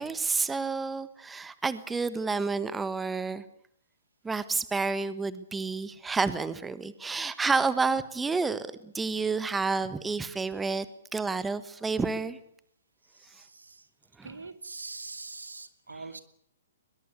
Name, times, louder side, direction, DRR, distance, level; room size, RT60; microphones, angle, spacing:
voice 1, 0.0-3.4 4.2-10.8 11.1-12.4 14.2-14.3 15.9-16.0, right 4 dB, 10° right, 14 dB, 1.3 m, -30 dB
voice 2, 13.1-13.9 14.2-16.2, right 3 dB, 85° right, 10 dB, 2.6 m, -43 dB
22.0 x 21.0 x 8.4 m, 0.70 s
figure-of-eight pair, 125°, 0 cm